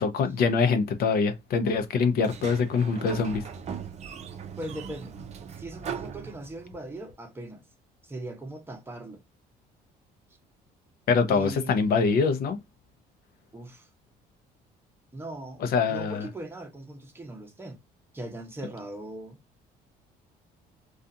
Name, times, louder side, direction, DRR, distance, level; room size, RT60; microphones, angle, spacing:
voice 1, 0.0-3.4 11.1-12.6 15.6-16.3, left 5 dB, 65° left, 0.6 m, -24 dB
Sliding door, 2.2-6.9, right 7 dB, 40° right, 0.5 m, -39 dB
voice 2, 4.6-5.2 5.5-7.6 8.0-9.2 11.3-11.8 13.5-13.9 15.1-17.8 18.1-19.4, right 1 dB, 15° right, 0.8 m, -39 dB
2.4 x 2.3 x 2.6 m
cardioid pair, 110°, 17 cm